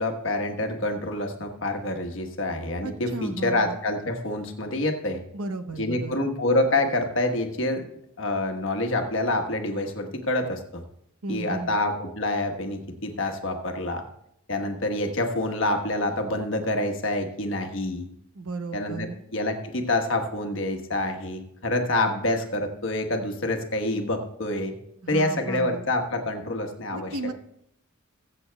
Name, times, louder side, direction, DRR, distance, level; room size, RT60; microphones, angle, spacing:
voice 1, 0.0-5.2 5.8-7.9 8.2-10.8 11.3-14.0 14.5-18.1 18.7-24.7 25.1-27.3, left 1 dB, 60° left, 4 dB, 1.3 m, -27 dB
voice 2, 2.8-3.8 5.3-6.3 11.2-11.8 18.3-19.2 25.0-25.9 26.9-27.3, right 3 dB, 85° right, 9 dB, 0.8 m, -34 dB
21.5 x 7.8 x 2.3 m, 0.75 s
head